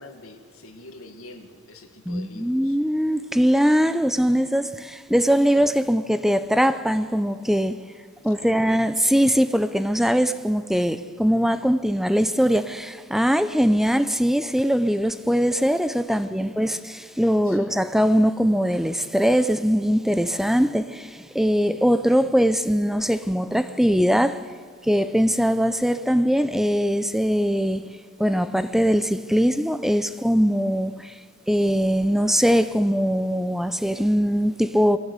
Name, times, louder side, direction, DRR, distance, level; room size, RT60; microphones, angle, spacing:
voice 1, 0.0-2.8 8.2-8.7 16.1-16.7 17.4-17.8, left 2 dB, 85° left, 2.0 m, -46 dB
voice 2, 2.1-7.8 8.2-24.4 24.8-27.8 28.2-31.1 31.5-35.0, equal, ahead, 0.5 m, -21 dB
22.0 x 15.0 x 8.2 m
head